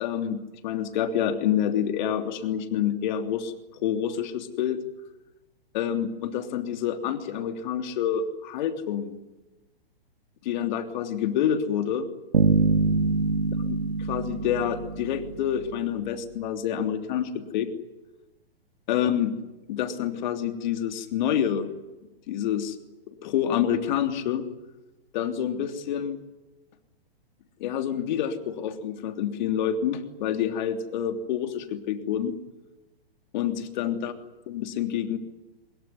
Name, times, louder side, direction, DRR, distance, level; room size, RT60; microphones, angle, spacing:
voice 1, 0.0-3.5 3.8-4.8 5.7-9.2 10.4-12.1 13.6-13.8 14.1-17.7 18.9-19.4 19.7-21.7 22.3-22.7 23.1-24.4 25.1-26.2 27.6-32.4 33.3-34.1 34.5-35.2, left 9 dB, 50° left, 7 dB, 3.2 m, -27 dB
sound 1, 12.3-15.7, right 4 dB, 85° right, 1.9 m, -25 dB
23.5 x 22.0 x 9.7 m, 1.0 s
hypercardioid pair, 120°, 30 cm